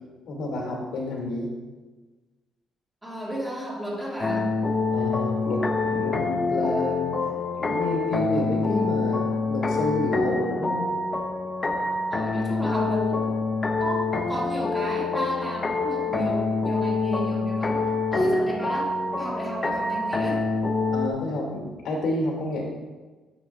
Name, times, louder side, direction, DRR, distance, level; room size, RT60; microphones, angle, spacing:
voice 1, 0.2-1.5 4.9-7.1 7.6-10.9 18.1-18.3 20.9-22.6, left 2 dB, 75° left, -2 dB, 2.4 m, -29 dB
voice 2, 3.0-4.6 12.1-13.3 13.8-17.8 18.1-20.5, right 1 dB, 10° right, -5 dB, 2.0 m, -33 dB
sound 1, 4.2-21.1, left 3 dB, 20° left, 0.5 m, -26 dB
10.5 x 6.7 x 2.4 m, 1.3 s
cardioid pair, 145°, 0 cm